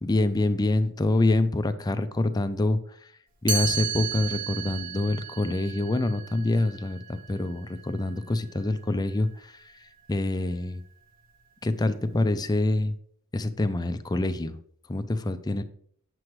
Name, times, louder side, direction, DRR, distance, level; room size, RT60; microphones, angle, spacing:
voice 1, 0.0-2.8 3.4-9.6 10.1-10.8 11.6-12.9 13.3-14.6 14.9-15.6, left 2 dB, 20° left, 10 dB, 0.4 m, -26 dB
Chime, 3.5-9.3, right 6 dB, 40° right, 1.0 m, -35 dB
8.6 x 7.6 x 3.1 m, 0.63 s
head